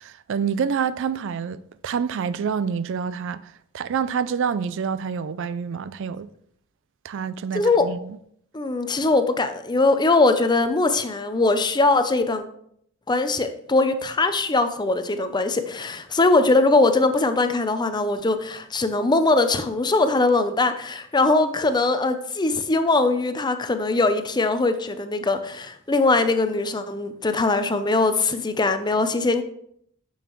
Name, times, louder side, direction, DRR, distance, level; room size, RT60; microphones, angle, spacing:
voice 1, 0.0-6.3 7.0-8.2, right 6 dB, 60° right, 0.4 m, -27 dB
voice 2, 7.5-7.9 8.5-12.4 13.1-29.4, left 3 dB, 20° left, 0.6 m, -21 dB
9.0 x 7.1 x 3.1 m
head